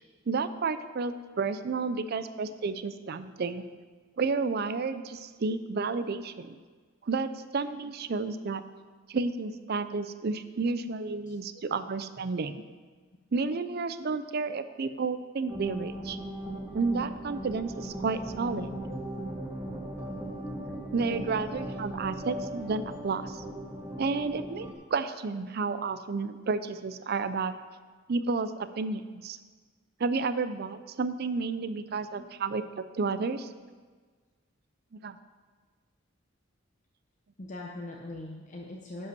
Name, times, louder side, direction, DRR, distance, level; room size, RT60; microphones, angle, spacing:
voice 1, 0.3-3.6 4.2-6.6 7.0-8.6 9.1-12.6 13.3-16.2 16.7-18.7 20.9-23.4 24.0-27.5 28.1-28.5 28.8-29.4 30.0-33.5 35.0-35.2, right 4 dB, 50° right, 12 dB, 0.5 m, -31 dB
voice 2, 11.3-11.6 32.2-32.3 37.4-39.1, left 2 dB, 40° left, 0 dB, 0.7 m, -42 dB
sound 1, 15.5-24.7, right 1 dB, 15° right, 1.5 m, -38 dB
10.5 x 5.4 x 6.0 m, 1.5 s
head